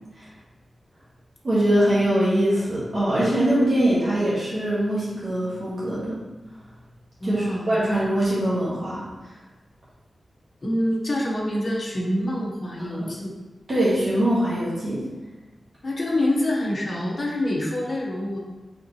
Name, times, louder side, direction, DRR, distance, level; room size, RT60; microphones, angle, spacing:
voice 1, 1.4-6.2 7.2-9.0 12.9-13.1 13.7-15.0, right 1 dB, 55° right, -9 dB, 1.3 m, -22 dB
voice 2, 7.2-7.7 10.6-13.3 15.8-18.4, left 1 dB, 40° left, -2 dB, 0.8 m, -26 dB
4.4 x 3.7 x 2.8 m, 1.2 s
wide cardioid pair, 125°, 0 cm